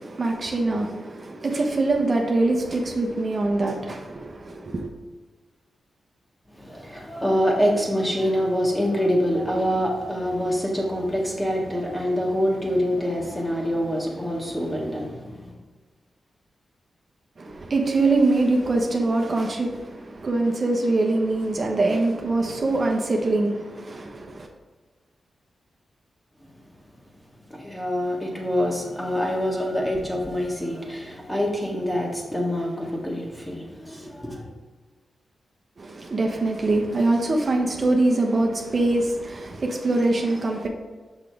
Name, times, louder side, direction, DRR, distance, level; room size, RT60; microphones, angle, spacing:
voice 1, 0.0-4.9 17.4-24.5 35.8-40.7, right 2 dB, 45° right, 0.9 m, -23 dB
voice 2, 6.5-15.6 26.4-26.5 27.5-34.5, equal, 10° left, 1.7 m, -25 dB
6.3 x 5.9 x 3.5 m
cardioid pair, 75°, 0 cm